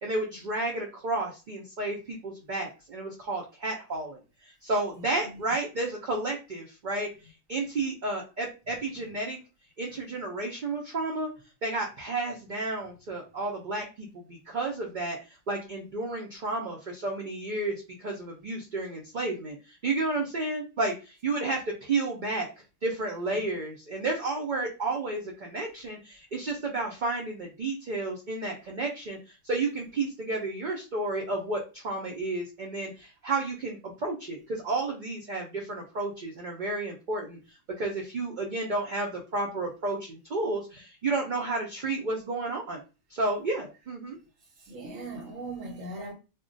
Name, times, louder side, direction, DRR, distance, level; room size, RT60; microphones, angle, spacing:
voice 1, 0.0-7.1 7.5-9.4 9.8-11.3 11.6-15.2 15.5-22.5 22.8-42.8 43.1-44.2, right 2 dB, 50° right, 0.6 m, -32 dB
voice 2, 44.4-46.1, right 2 dB, 85° right, 1.0 m, -39 dB
2.3 x 2.1 x 3.8 m
omnidirectional pair, 1.3 m